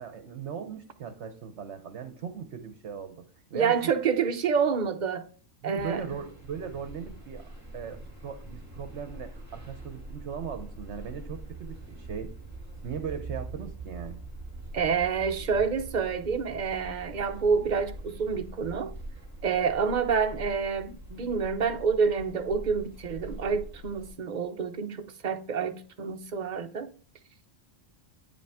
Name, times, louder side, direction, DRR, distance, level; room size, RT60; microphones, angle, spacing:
voice 1, 0.0-3.3 3.5-3.9 5.6-12.3 12.8-14.2, right 7 dB, 65° right, 1.0 m, -38 dB
voice 2, 3.5-5.3 5.6-6.0 14.7-18.9 19.4-26.9, right 6 dB, 45° right, 0.6 m, -28 dB
sound 1, 5.7-24.1, right 2 dB, 10° right, 2.6 m, -43 dB
9.7 x 5.2 x 3.5 m
omnidirectional pair, 1.3 m